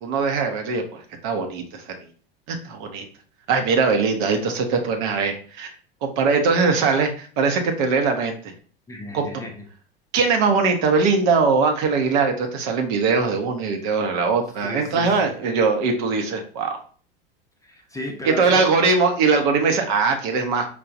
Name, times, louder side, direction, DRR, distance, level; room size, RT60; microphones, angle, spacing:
voice 1, 0.0-1.8 2.5-3.0 3.5-5.7 6.0-8.5 9.1-9.2 10.1-16.8 18.4-20.7, right 4 dB, 55° right, 4 dB, 0.8 m, -21 dB
voice 2, 8.9-9.6 14.6-15.3 17.6-18.7, left 1 dB, 10° left, 2 dB, 0.6 m, -34 dB
4.6 x 2.2 x 2.5 m, 0.43 s
hypercardioid pair, 80°, 30 cm